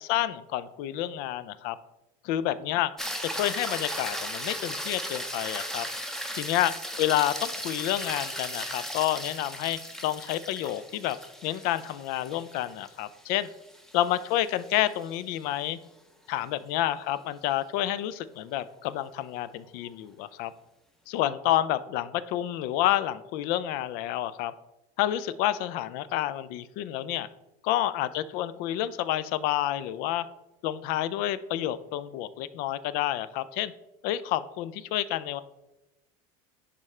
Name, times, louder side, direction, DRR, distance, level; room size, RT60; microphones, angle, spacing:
voice 1, 0.0-1.8 2.2-2.9 3.3-5.9 6.3-11.2 11.4-13.5 13.9-15.8 16.3-20.5 21.1-24.5 25.0-27.3 27.6-30.2 30.6-33.7 34.0-35.4, left 13 dB, 55° left, 15 dB, 0.4 m, -29 dB
sound 1, 3.0-15.4 19.8-19.9, equal, 5° left, 0.6 m, -37 dB
11.0 x 3.7 x 3.2 m, 0.96 s
supercardioid pair, 135°, 18 cm